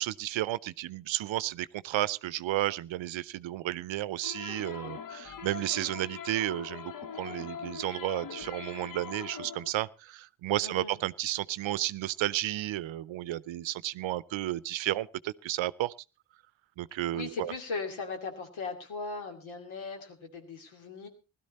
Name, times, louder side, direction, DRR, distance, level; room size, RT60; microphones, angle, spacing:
voice 1, 0.0-6.9 7.2-15.9 16.8-17.5, right 15 dB, 75° right, 0.6 m, -32 dB
sound 1, 4.2-9.7, left 7 dB, 45° left, 0.8 m, -42 dB
voice 2, 10.6-11.0 17.1-21.1, left 4 dB, 80° left, 2.7 m, -38 dB
16.5 x 12.5 x 4.1 m
supercardioid pair, 50°, 47 cm